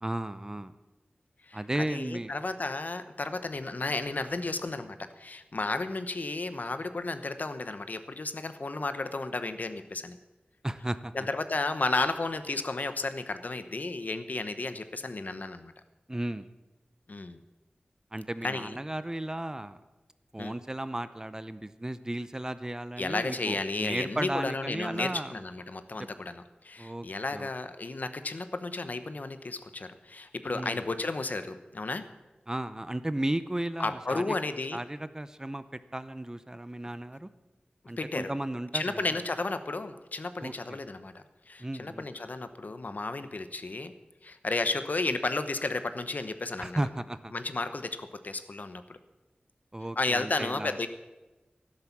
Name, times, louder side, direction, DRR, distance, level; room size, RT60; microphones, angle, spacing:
voice 1, 0.0-0.7 1.5-2.3 10.6-11.1 16.1-16.5 18.1-19.8 20.3-25.4 26.8-27.1 27.3-27.5 30.5-30.8 32.5-34.3 34.7-35.6 35.9-37.3 37.9-39.0 40.4-40.8 41.6-42.1 46.6-47.3 49.7-50.7, right 1 dB, 20° right, 13 dB, 0.6 m, -34 dB
voice 2, 1.4-10.2 11.1-15.7 17.1-17.4 18.4-18.8 20.4-20.5 23.0-32.0 33.8-34.8 38.0-38.3 38.7-43.9 44.2-46.8 47.3-49.0 50.0-50.9, left 3 dB, 55° left, 10 dB, 0.9 m, -33 dB
12.0 x 11.5 x 7.3 m, 1.1 s
wide cardioid pair, 75°, 3 cm